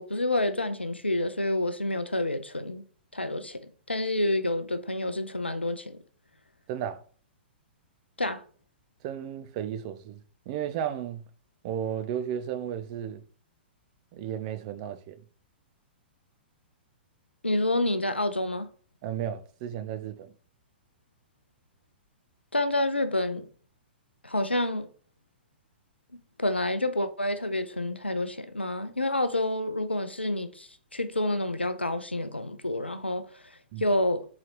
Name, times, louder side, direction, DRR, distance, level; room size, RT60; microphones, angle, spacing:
voice 1, 0.0-2.8 3.1-3.6 3.9-6.0 8.2-8.4 17.4-18.7 22.5-23.5 24.2-24.9 26.4-34.3, left 1 dB, 90° left, 0.5 m, -28 dB
voice 2, 6.7-7.0 9.0-10.2 10.5-11.2 11.6-13.2 14.1-15.2 19.0-20.3 33.7-33.9, right 9 dB, 40° right, 0.5 m, -34 dB
4.1 x 3.8 x 3.1 m
figure-of-eight pair, 110°, 6 cm